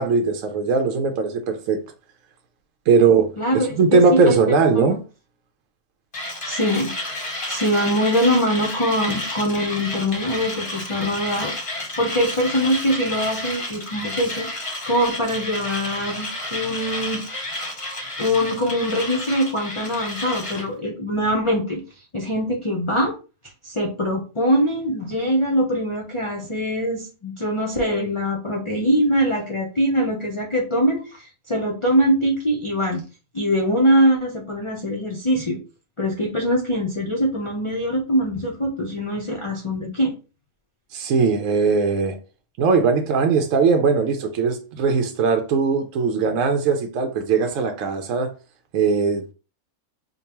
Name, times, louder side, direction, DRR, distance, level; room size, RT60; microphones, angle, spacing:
voice 1, 0.0-1.8 2.9-3.3 3.8-5.0 40.9-42.2 42.6-48.3 48.7-49.3, right 5 dB, 70° right, 0.9 m, -19 dB
voice 2, 3.4-4.4 4.7-4.9 6.4-6.9 7.5-14.5 14.9-17.2 18.2-21.8 22.1-23.1 23.6-33.0 33.3-35.6 36.0-40.1, equal, 45° left, 0.4 m, -23 dB
Mechanisms, 6.1-20.7, left 1 dB, 30° left, 0.8 m, -31 dB
5.1 x 2.2 x 2.9 m
omnidirectional pair, 1.5 m